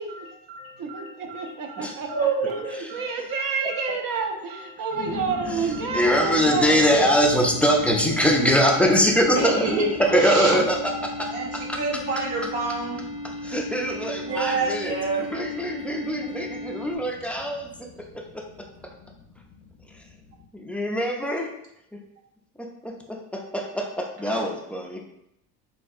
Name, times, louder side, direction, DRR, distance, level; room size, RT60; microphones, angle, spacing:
voice 1, 0.0-2.2 2.9-6.7, right 5 dB, 55° right, 3 dB, 0.7 m, -29 dB
voice 2, 1.8-3.1 6.7-7.1 9.3-9.9 10.1-10.5 11.3-13.0 14.2-15.5 24.3-24.5, right 3 dB, 75° right, -1 dB, 1.0 m, -27 dB
sound 1, 2.2-2.4 3.1-3.2 4.9-20.5, left 5 dB, 55° left, 0.5 m, -43 dB
voice 3, 5.4-10.8 11.0-11.8 13.2-18.7 20.5-21.5 22.6-25.1, equal, 5° left, 0 dB, 0.3 m, -23 dB
sound 2, 6.9-17.0, left 1 dB, 20° left, 0.8 m, -36 dB
3.4 x 2.6 x 2.3 m, 0.80 s
supercardioid pair, 85°, 41 cm